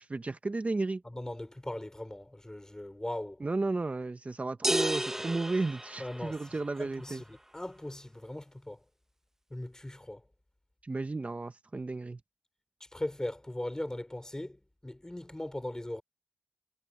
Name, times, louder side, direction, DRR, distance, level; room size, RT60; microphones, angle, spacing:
voice 1, 0.0-1.0 3.4-7.2 10.8-12.2, right 3 dB, 40° right, 1.1 m, -33 dB
voice 2, 1.0-3.4 6.0-8.8 9.5-10.2 12.8-16.0, left 1 dB, 15° left, 3.3 m, -39 dB
sound 1, 4.6-6.7, right 1 dB, 10° right, 0.9 m, -32 dB
cardioid pair, 40°, 4 cm